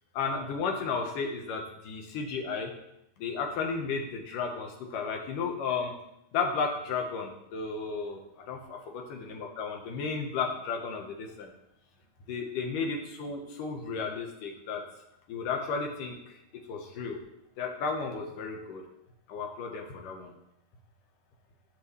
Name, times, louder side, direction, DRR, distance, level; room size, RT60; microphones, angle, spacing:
voice 1, 0.1-2.7 3.2-5.9 6.3-8.2 8.5-11.5 12.3-14.8 15.3-16.2 16.7-17.2 17.6-18.8 19.3-20.3, left 5 dB, 85° left, 2 dB, 3.0 m, -33 dB
17.0 x 6.3 x 3.4 m, 0.83 s
omnidirectional pair, 3.7 m